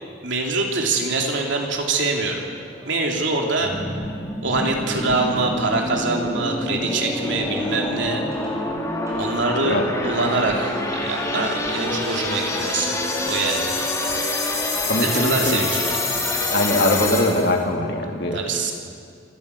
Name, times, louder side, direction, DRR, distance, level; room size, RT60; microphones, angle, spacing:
voice 1, 0.2-2.4 2.9-3.7 4.4-8.2 9.1-13.8 15.0-15.8 18.3-18.7, right 3 dB, 65° right, 1 dB, 3.1 m, -24 dB
sound 1, 1.1-12.3, right 1 dB, 15° right, 6.3 m, -43 dB
sound 2, 3.6-17.6, left 2 dB, 15° left, 2.5 m, -26 dB
voice 2, 14.9-15.6 16.5-18.5, left 1 dB, 55° left, 2 dB, 2.5 m, -22 dB
27.0 x 14.5 x 8.4 m, 2.2 s
head